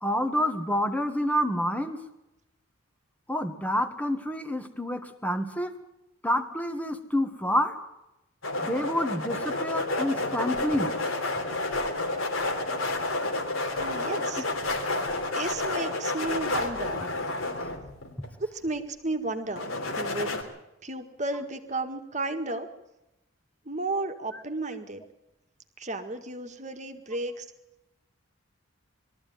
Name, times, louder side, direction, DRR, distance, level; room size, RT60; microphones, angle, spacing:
voice 1, 0.0-2.0 3.3-5.7 6.2-7.8 8.6-10.9 24.3-24.4, equal, 5° left, 8 dB, 1.6 m, -28 dB
sound 1, 8.4-18.3 19.6-20.4, left 2 dB, 80° left, 3.3 m, -30 dB
voice 2, 13.7-14.4 15.3-17.0 18.5-20.4 20.8-22.7 23.7-25.0 25.8-27.5, right 2 dB, 35° right, 7 dB, 1.8 m, -33 dB
22.0 x 14.0 x 9.4 m, 0.94 s
head